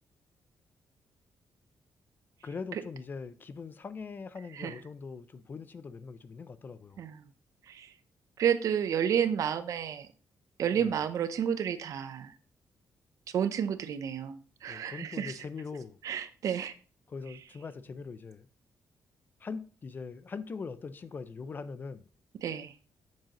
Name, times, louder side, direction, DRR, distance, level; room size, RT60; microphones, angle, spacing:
voice 1, 2.4-7.0 10.8-10.9 14.7-16.0 17.1-18.5 19.4-22.1, left 5 dB, 30° left, 0.4 m, -41 dB
voice 2, 7.0-7.3 7.6-8.0 8.4-10.1 10.6-12.4 13.3-15.4 16.0-16.7 17.3-17.4 22.3-22.8, right 8 dB, 65° right, 0.7 m, -31 dB
7.5 x 7.3 x 3.0 m
wide cardioid pair, 160°, 6 cm